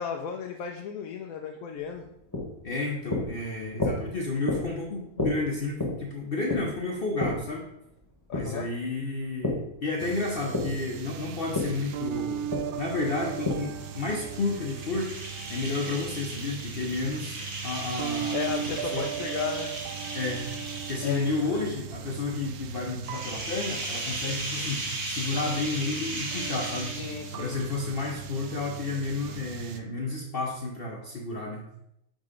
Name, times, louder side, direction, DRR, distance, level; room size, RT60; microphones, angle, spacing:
voice 1, 0.0-2.1 8.3-8.7 18.3-19.7 21.0-21.6 27.0-27.6, left 7 dB, 75° left, 2 dB, 0.9 m, -34 dB
sound 1, 1.8-9.7 10.0-13.9, left 2 dB, 15° left, 1.1 m, -32 dB
voice 2, 2.6-7.7 8.3-12.4 12.8-15.1 15.5-18.4 18.7-19.1 20.1-20.5 20.9-27.0 27.3-31.6, left 3 dB, 50° left, -2 dB, 0.8 m, -31 dB
sound 2, 10.0-29.8, right 8 dB, 85° right, 1.1 m, -38 dB
sound 3, 13.8-21.6 23.0-27.4, right 2 dB, 65° right, 1.7 m, -37 dB
5.3 x 3.8 x 4.9 m, 0.79 s
omnidirectional pair, 1.5 m